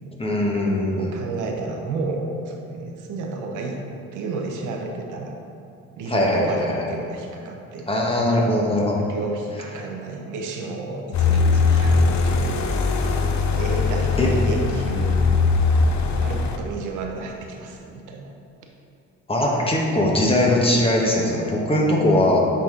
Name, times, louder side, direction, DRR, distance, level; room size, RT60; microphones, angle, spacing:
voice 1, 0.2-1.2 6.1-6.7 7.9-9.0 14.2-14.3 19.3-22.4, left 1 dB, 20° left, -2 dB, 1.2 m, -20 dB
voice 2, 0.9-3.8 4.1-5.4 6.0-7.9 9.0-12.8 13.3-15.3 16.1-18.3, right 3 dB, 85° right, 2 dB, 0.9 m, -31 dB
sound 1, 11.1-16.6, left 4 dB, 65° left, 0.6 m, -20 dB
8.0 x 4.1 x 3.8 m, 2.6 s
cardioid pair, 90°, 30 cm